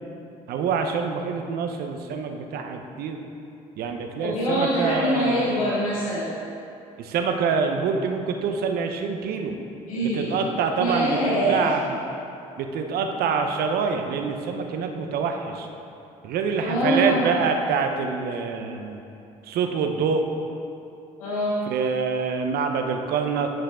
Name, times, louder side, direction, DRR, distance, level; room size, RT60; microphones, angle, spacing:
voice 1, 0.5-3.2 3.8-5.5 7.0-9.6 10.0-12.0 12.6-15.7 16.2-19.0 19.4-20.3 21.7-23.5, right 5 dB, 65° right, 5 dB, 0.8 m, -26 dB
voice 2, 4.2-6.3 9.9-10.4 10.8-11.7 16.6-17.3 21.2-21.6, equal, 85° left, -6 dB, 1.1 m, -24 dB
10.5 x 6.7 x 3.7 m, 2.6 s
hypercardioid pair, 55°, 17 cm